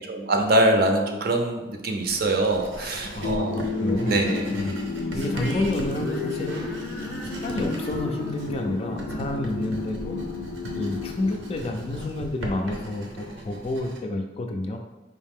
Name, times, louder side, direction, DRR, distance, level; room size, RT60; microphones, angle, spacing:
voice 1, 0.0-3.7 4.1-4.5, right 1 dB, 55° right, 3 dB, 0.6 m, -23 dB
Writing, 2.0-14.0, equal, 85° right, 0.8 m, -38 dB
voice 2, 2.8-4.2 4.5-4.8 5.1-6.5 7.3-10.2 10.8-14.8, left 1 dB, 30° left, 4 dB, 0.3 m, -30 dB
sound 1, 3.2-12.2, left 3 dB, 90° left, 0.5 m, -32 dB
sound 2, 5.1-10.5, left 2 dB, 5° right, 0.6 m, -37 dB
4.7 x 2.7 x 3.6 m, 1.1 s
head